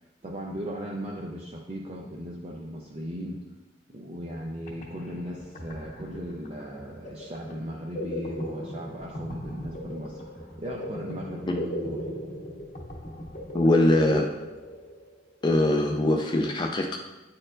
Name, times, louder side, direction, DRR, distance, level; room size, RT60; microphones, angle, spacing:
voice 1, 0.2-3.5 3.9-10.2 10.6-12.1, equal, 35° right, -2 dB, 0.5 m, -37 dB
sound 1, 4.4-4.5 4.7-15.3, equal, 45° left, 0.8 m, -38 dB
voice 2, 13.5-14.3 15.4-17.0, left 1 dB, 25° left, 2 dB, 0.3 m, -22 dB
8.9 x 4.4 x 2.5 m, 1.1 s
head